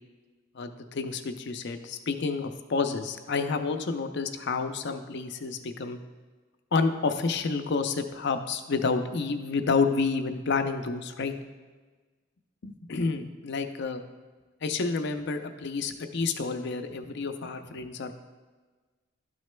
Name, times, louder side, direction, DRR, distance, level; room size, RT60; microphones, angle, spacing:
voice 1, 0.5-6.0 6.7-11.3 12.6-14.0 14.6-18.1, left 4 dB, 60° left, 7 dB, 0.5 m, -29 dB
12.0 x 6.2 x 2.2 m, 1.4 s
head